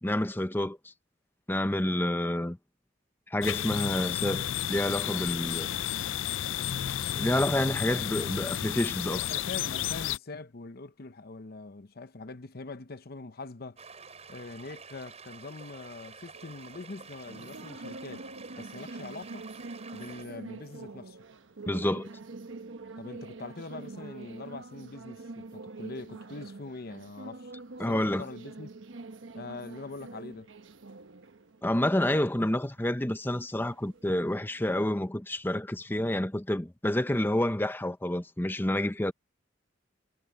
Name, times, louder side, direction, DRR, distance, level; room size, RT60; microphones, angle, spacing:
voice 1, 0.0-0.8 1.5-2.6 3.3-5.7 7.2-9.2 21.7-22.1 27.8-28.2 31.6-39.1, left 1 dB, 10° left, 0.8 m, -28 dB
sound 1, 3.4-10.2, left 11 dB, 90° left, 0.5 m, -32 dB
voice 2, 9.0-13.8 14.3-18.2 18.6-19.5 19.9-21.2 23.0-27.5 27.9-28.7 29.3-30.5, left 3 dB, 55° left, 0.9 m, -43 dB
sound 2, 13.8-20.2, right 5 dB, 35° right, 7.1 m, -49 dB
sound 3, 16.3-34.8, right 3 dB, 85° right, 1.1 m, -45 dB
head